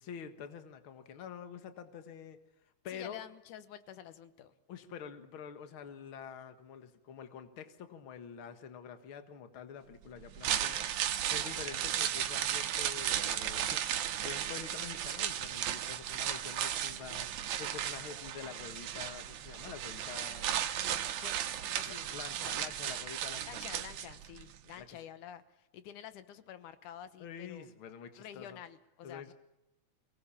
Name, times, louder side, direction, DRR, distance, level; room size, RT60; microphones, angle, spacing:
voice 1, 0.0-2.4 2.8-3.2 4.7-10.8 11.2-20.7 21.9-23.6 24.8-25.0 27.2-28.6 29.0-29.3, left 7 dB, 50° left, 9 dB, 2.1 m, -47 dB
voice 2, 2.9-4.5 20.7-22.6 23.5-27.7 28.2-29.3, left 10 dB, 85° left, 12 dB, 2.7 m, -49 dB
sound 1, 10.2-24.4 24.7-24.8, right 11 dB, 90° right, 2.7 m, -35 dB
23.5 x 19.0 x 7.3 m, 0.92 s
omnidirectional pair, 3.5 m